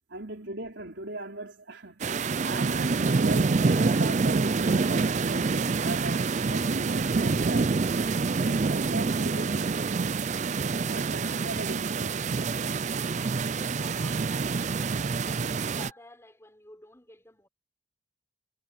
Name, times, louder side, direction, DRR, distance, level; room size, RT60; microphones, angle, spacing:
voice 1, 0.1-7.8 8.4-10.0 10.9-12.3, right 2 dB, 65° right, 4.5 m, -38 dB
sound 1, 2.0-15.9, right 4 dB, 35° right, 0.4 m, -26 dB
voice 2, 8.3-8.8 12.8-17.5, left 1 dB, 15° left, 5.0 m, -52 dB
head